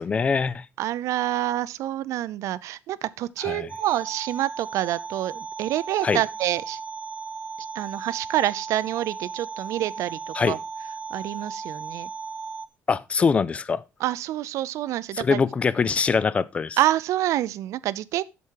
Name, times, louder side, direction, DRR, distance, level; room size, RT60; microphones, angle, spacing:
voice 1, 0.0-0.7 3.4-3.7 6.0-6.2 10.3-10.6 12.9-13.8 15.1-16.8, left 5 dB, 25° left, 0.4 m, -23 dB
voice 2, 0.8-6.8 7.7-10.6 11.1-12.1 14.0-15.4 16.8-18.2, right 14 dB, 75° right, 0.5 m, -27 dB
sound 1, 3.7-12.7, right 4 dB, 30° right, 0.8 m, -36 dB
8.1 x 7.1 x 4.6 m
cardioid pair, 175°, 5 cm